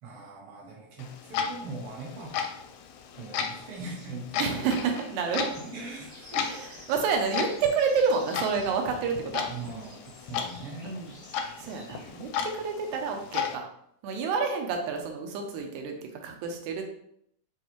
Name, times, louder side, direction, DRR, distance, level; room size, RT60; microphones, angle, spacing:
voice 1, 0.0-2.4 3.2-4.9 5.5-6.5 9.5-10.9 11.9-12.3, right 3 dB, 60° right, -3 dB, 1.9 m, -41 dB
Clock, 1.0-13.6, left 7 dB, 80° left, 1.6 m, -36 dB
voice 2, 4.4-5.5 6.4-9.5 10.8-11.1 11.6-12.3 12.6-13.7 14.0-16.8, right 5 dB, 90° right, 3 dB, 2.0 m, -29 dB
sound 1, 5.3-12.4, equal, 15° right, 0.8 m, -52 dB
6.9 x 2.4 x 2.9 m, 0.71 s
omnidirectional pair, 3.3 m